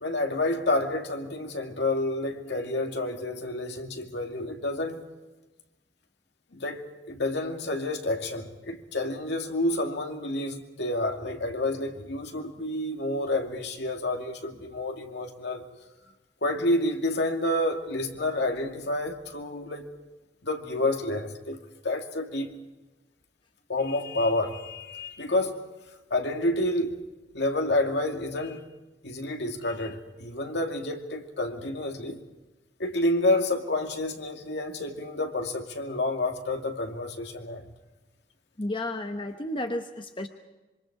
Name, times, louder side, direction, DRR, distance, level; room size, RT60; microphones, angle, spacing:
voice 1, 0.0-5.1 6.5-15.6 16.4-19.9 20.4-22.6 23.7-25.7 26.1-27.0 27.3-28.7 29.0-32.2 32.8-37.7, left 2 dB, 70° left, 2.4 m, -29 dB
voice 2, 38.6-40.3, left 1 dB, 30° left, 1.0 m, -32 dB
26.5 x 24.5 x 4.8 m
head